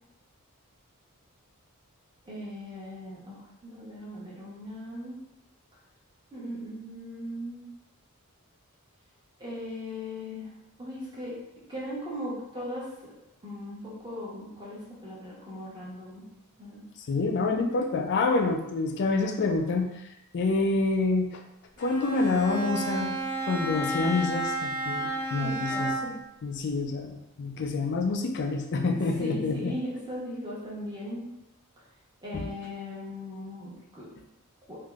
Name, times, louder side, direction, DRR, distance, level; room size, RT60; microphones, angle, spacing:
voice 1, 2.2-5.2 6.3-7.7 9.4-10.5 10.8-11.3 11.7-12.9 13.4-16.2 16.6-16.8 25.4-26.1 29.2-31.3 32.2-34.1 34.7-34.8, equal, 20° right, -7 dB, 0.9 m, -38 dB
voice 2, 17.1-19.9 20.3-21.4 21.8-23.2 23.5-25.9 26.4-29.7 32.3-32.5, left 3 dB, 50° left, 3 dB, 0.4 m, -27 dB
Bowed string instrument, 21.8-26.2, right 1 dB, 85° right, 1.3 m, -31 dB
3.5 x 2.6 x 2.4 m, 0.91 s
head